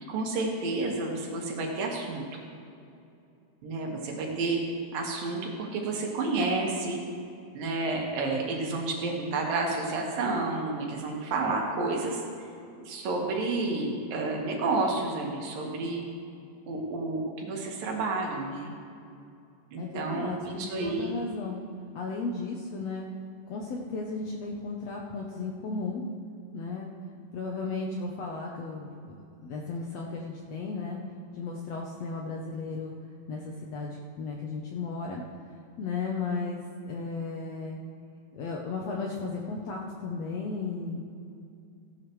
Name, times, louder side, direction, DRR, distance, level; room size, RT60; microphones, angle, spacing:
voice 1, 0.0-2.4 3.6-4.6 4.9-7.0 7.6-12.5 12.9-16.0 16.7-18.7 19.7-21.1, right 3 dB, 80° right, 0 dB, 3.3 m, -30 dB
voice 2, 19.8-21.6 21.9-23.1 23.5-26.1 26.5-26.9 27.3-31.0 31.3-32.9 33.3-35.2 35.8-37.8 38.3-41.0, left 4 dB, 70° left, 0 dB, 1.6 m, -35 dB
16.5 x 11.0 x 3.2 m, 2.5 s
omnidirectional pair, 3.9 m